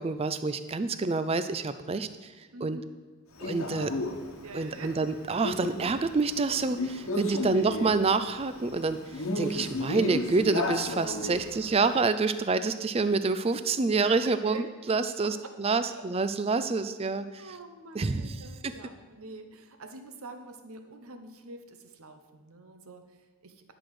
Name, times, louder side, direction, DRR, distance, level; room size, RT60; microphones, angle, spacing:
voice 1, 0.0-2.3 2.6-2.8 3.4-4.0 4.5-9.0 9.4-17.4 17.9-18.7, right 4 dB, 25° right, 12 dB, 0.4 m, -27 dB
voice 2, 2.5-2.9 4.4-5.0 7.3-7.5 11.4-11.5 14.2-14.7 15.2-15.6 15.9-16.0 17.4-23.7, right 3 dB, 70° right, 7 dB, 0.9 m, -46 dB
Male speech man speaking, 3.4-11.9, left 2 dB, 65° left, 1.2 m, -34 dB
10.5 x 6.1 x 4.8 m, 1.4 s
head